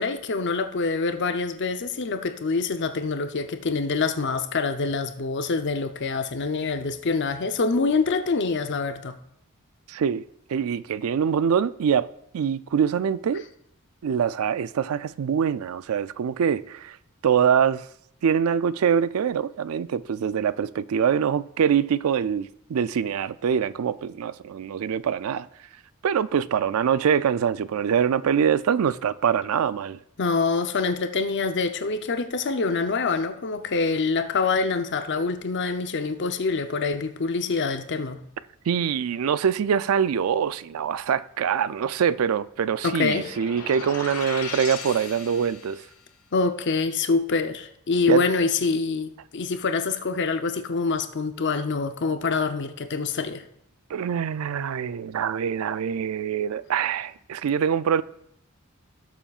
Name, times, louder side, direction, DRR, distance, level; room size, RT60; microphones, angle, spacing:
voice 1, 0.0-9.2 30.2-38.2 42.8-43.3 46.3-53.4, left 4 dB, 55° left, 0.7 m, -25 dB
voice 2, 9.9-10.2 10.5-12.1 12.3-13.4 14.0-17.0 17.2-17.9 18.2-25.5 26.0-30.0 38.7-45.8 48.1-48.2 53.9-58.0, right 7 dB, 75° right, 0.4 m, -24 dB
sound 1, 43.1-45.9, left 5 dB, 90° left, 1.4 m, -37 dB
17.5 x 7.1 x 2.4 m
head